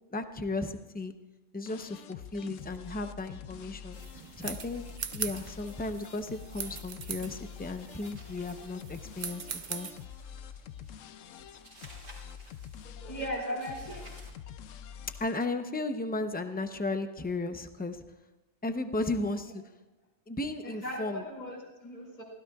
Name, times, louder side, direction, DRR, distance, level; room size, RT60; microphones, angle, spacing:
voice 1, 0.1-1.1 1.5-4.0 4.4-4.8 5.1-9.9 15.2-18.0 18.6-19.6 20.3-21.2, left 2 dB, 10° left, 7 dB, 0.5 m, -35 dB
sound 1, 1.7-15.5, left 8 dB, 75° left, 1.0 m, -46 dB
sound 2, 3.9-10.0, right 6 dB, 45° right, 0.7 m, -41 dB
sound 3, 7.6-14.3, right 1 dB, 90° right, 3.5 m, -56 dB
voice 2, 12.8-14.1 20.6-22.2, equal, 35° left, -2 dB, 3.2 m, -38 dB
24.0 x 16.0 x 2.4 m, 1.1 s
omnidirectional pair, 1.3 m